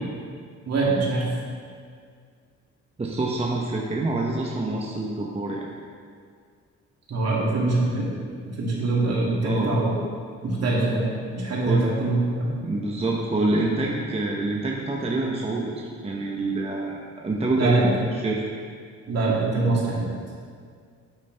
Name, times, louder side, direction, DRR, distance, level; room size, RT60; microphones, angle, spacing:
voice 1, 0.7-1.3 7.1-8.1 8.6-9.9 10.4-12.5 17.5-17.9 19.1-20.1, right 2 dB, 55° right, -4 dB, 2.4 m, -23 dB
voice 2, 3.0-5.7 9.4-9.7 11.7-11.8 12.6-18.4, right 2 dB, 20° right, -2 dB, 0.9 m, -26 dB
9.3 x 8.2 x 3.4 m, 2.1 s
cardioid pair, 90°, 30 cm